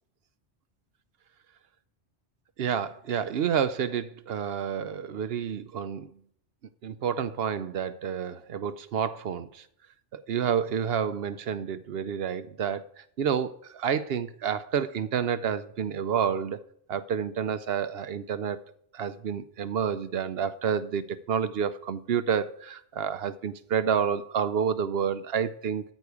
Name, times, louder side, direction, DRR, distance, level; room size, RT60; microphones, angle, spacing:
voice 1, 2.6-6.1 6.8-9.6 10.1-12.8 13.2-16.6 16.9-18.6 18.9-25.8, right 7 dB, 65° right, 0.8 m, -29 dB
13.5 x 4.8 x 8.2 m
omnidirectional pair, 1.2 m